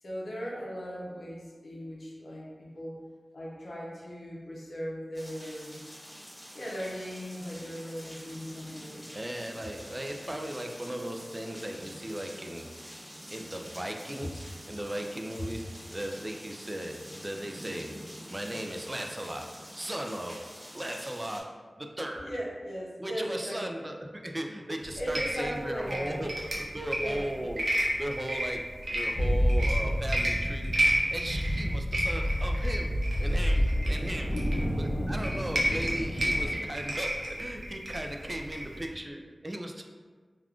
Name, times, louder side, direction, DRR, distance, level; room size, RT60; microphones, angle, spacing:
voice 1, 0.0-3.0 3.3-5.9 6.5-9.1 15.4-15.5 22.2-23.7 25.0-26.3 26.9-27.3 34.3-35.3, equal, 75° left, -5 dB, 0.6 m, -38 dB
sound 1, 5.1-21.4, equal, 5° right, 1.1 m, -47 dB
voice 2, 8.8-13.0 13.3-15.6 15.9-17.9 18.3-20.4 20.7-21.4 21.8-22.3 23.0-27.6 28.0-28.6 28.9-30.7 31.1-34.3 34.8-39.8, right 1 dB, 25° right, 3 dB, 0.3 m, -37 dB
sound 2, 24.8-38.9, right 1 dB, 85° right, 0.5 m, -32 dB
sound 3, 29.1-36.5, equal, 30° left, 1.0 m, -29 dB
3.4 x 2.4 x 2.3 m, 1.5 s
wide cardioid pair, 50°, 0 cm